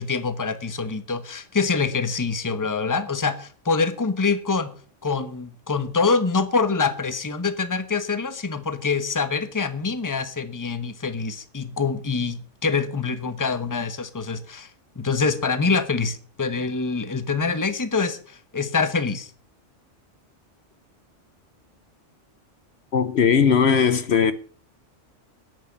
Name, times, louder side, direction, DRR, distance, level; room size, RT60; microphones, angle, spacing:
voice 1, 0.0-4.7 5.0-14.7 15.0-19.3, left 4 dB, 15° left, 1.0 m, -25 dB
voice 2, 22.9-24.3, left 6 dB, 65° left, 1.1 m, -18 dB
10.5 x 8.4 x 8.5 m
omnidirectional pair, 1.2 m